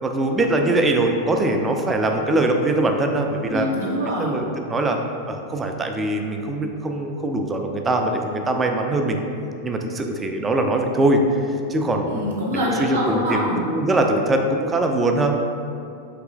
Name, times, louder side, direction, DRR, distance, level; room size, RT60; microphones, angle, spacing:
voice 1, 0.0-3.7 4.2-5.0 5.3-9.2 9.6-11.2 11.5-12.2 12.5-15.5, right 2 dB, 15° right, 4 dB, 0.3 m, -22 dB
voice 2, 3.5-4.3 12.1-13.6, equal, 70° right, -5 dB, 0.6 m, -24 dB
4.0 x 3.0 x 2.3 m, 2.5 s
figure-of-eight pair, 90°, 0 cm